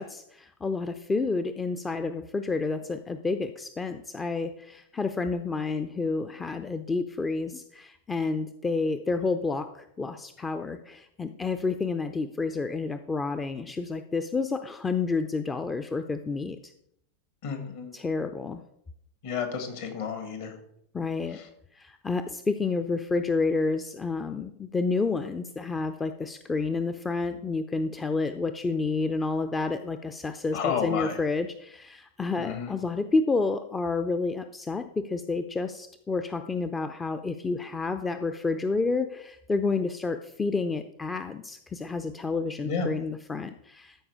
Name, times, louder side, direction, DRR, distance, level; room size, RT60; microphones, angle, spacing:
voice 1, 0.0-16.7 17.9-18.6 20.9-21.4 21.7-44.1, left 3 dB, 15° left, 9 dB, 0.5 m, -30 dB
voice 2, 17.4-17.9 19.2-20.6 21.3-21.5 30.5-31.2 32.4-32.7 42.6-42.9, left 6 dB, 55° left, 6 dB, 1.9 m, -31 dB
13.0 x 4.9 x 4.8 m, 0.74 s
figure-of-eight pair, 90°, 0 cm